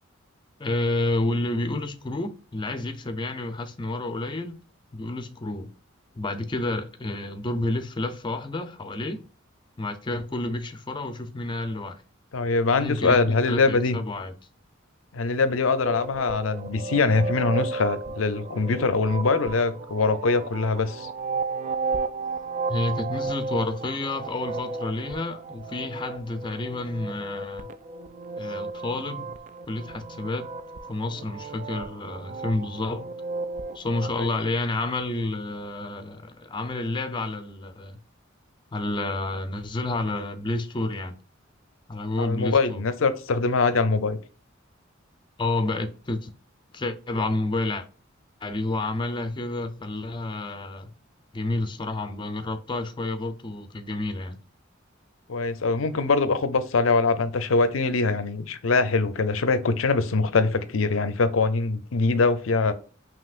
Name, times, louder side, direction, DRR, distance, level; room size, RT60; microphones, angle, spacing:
voice 1, 0.6-4.6 4.9-5.7 6.2-9.2 9.8-12.0 12.8-14.3 22.7-27.7 28.4-29.4 29.7-30.5 30.9-33.1 33.7-38.0 38.7-41.2 41.9-42.8 45.4-46.3 46.7-47.9 48.4-50.9 51.3-54.4, left 2 dB, 25° left, 0.5 m, -30 dB
voice 2, 12.3-14.0 15.1-21.1 34.1-34.3 42.2-44.2 55.3-62.7, left 3 dB, 85° left, 0.6 m, -23 dB
sound 1, 15.8-34.1, right 3 dB, 40° right, 0.3 m, -34 dB
5.6 x 2.9 x 2.4 m
head